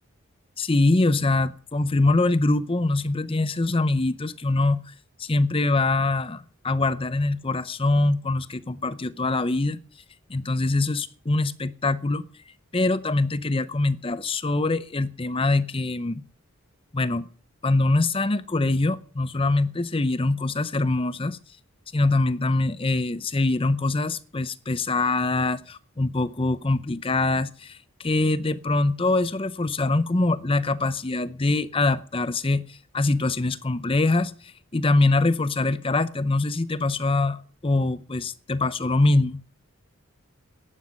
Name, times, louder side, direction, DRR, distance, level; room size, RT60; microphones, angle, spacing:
voice 1, 0.6-4.8 5.2-9.8 10.3-12.2 12.7-16.2 16.9-17.3 17.6-21.4 21.9-34.3 34.7-39.4, left 2 dB, 25° left, 0.6 m, -23 dB
15.5 x 11.0 x 6.4 m
head